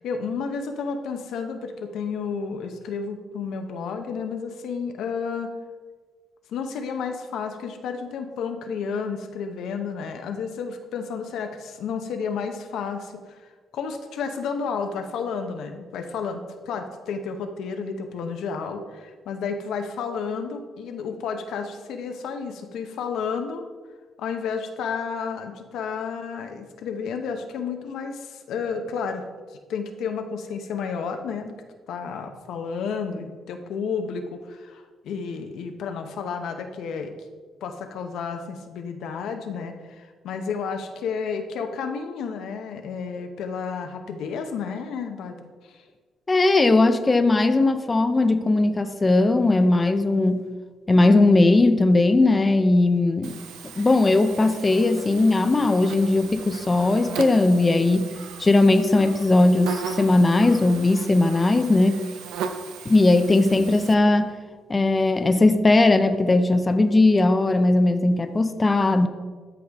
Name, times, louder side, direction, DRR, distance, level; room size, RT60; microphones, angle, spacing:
voice 1, 0.0-5.5 6.5-23.7 24.2-29.3 29.7-31.6 31.9-37.1 37.6-45.8, left 5 dB, 80° left, 6 dB, 0.8 m, -31 dB
voice 2, 46.3-50.4 50.9-53.4 53.8-58.1 58.4-62.0 62.9-64.3 64.7-69.1, left 2 dB, 25° left, 8 dB, 0.5 m, -19 dB
Buzz, 53.2-63.9, right 6 dB, 90° right, 0.6 m, -37 dB
13.0 x 4.9 x 3.5 m, 1.5 s
cardioid pair, 90°, 0 cm